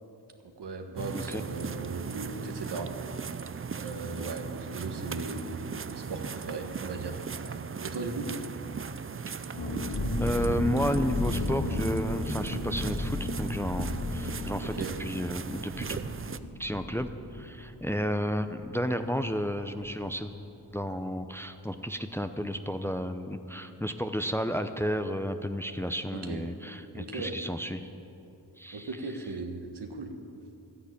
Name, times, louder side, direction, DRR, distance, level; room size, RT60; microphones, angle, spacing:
voice 1, 0.4-2.9 3.7-8.3 14.6-15.0 26.1-26.4 26.9-27.4 28.7-30.1, right 3 dB, 70° right, 4 dB, 1.6 m, -38 dB
sound 1, 1.0-16.4, right 6 dB, 30° right, 0.5 m, -38 dB
sound 2, 9.5-19.0 19.2-19.3 19.6-19.9, left 1 dB, 70° left, 2.0 m, -34 dB
voice 2, 10.2-16.0 16.6-20.3 20.7-27.9 28.6-28.9, equal, 5° left, 8 dB, 0.7 m, -32 dB
12.0 x 10.5 x 8.5 m, 2.9 s
cardioid pair, 50°, 42 cm